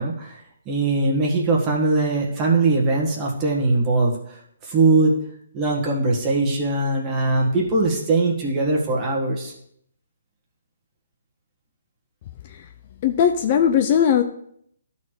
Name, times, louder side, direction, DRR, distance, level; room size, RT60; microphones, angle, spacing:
voice 1, 0.0-5.1 5.5-9.5, right 3 dB, 20° right, -2 dB, 1.6 m, -21 dB
voice 2, 13.0-14.2, left 8 dB, 30° left, 6 dB, 0.4 m, -18 dB
12.0 x 4.2 x 4.7 m, 0.68 s
hypercardioid pair, 165°, 0 cm